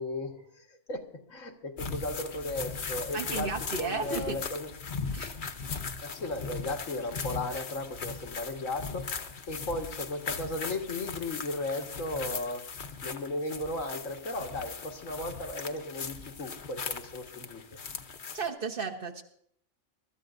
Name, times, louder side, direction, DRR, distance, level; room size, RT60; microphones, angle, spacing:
voice 1, 0.0-4.7 6.0-12.7 13.0-17.8, left 2 dB, 90° left, 2 dB, 1.9 m, -36 dB
sound 1, 1.8-18.5, left 5 dB, 45° left, 0.9 m, -39 dB
voice 2, 3.1-4.4 5.1-5.3 18.3-19.2, right 4 dB, 45° right, 3 dB, 1.3 m, -34 dB
23.5 x 13.0 x 2.6 m, 0.70 s
omnidirectional pair, 1.3 m